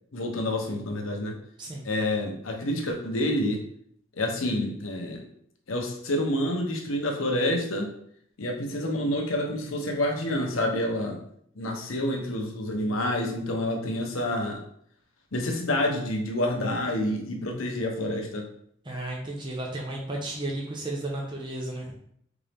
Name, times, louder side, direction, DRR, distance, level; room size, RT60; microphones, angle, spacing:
voice 1, 0.1-1.4 1.8-3.6 4.2-5.2 5.7-7.9 8.4-11.2 11.6-14.6 15.3-18.5, left 1 dB, 80° left, 2 dB, 0.8 m, -28 dB
voice 2, 18.8-21.9, right 1 dB, 25° right, -2 dB, 0.6 m, -33 dB
4.0 x 3.6 x 3.4 m, 0.68 s
head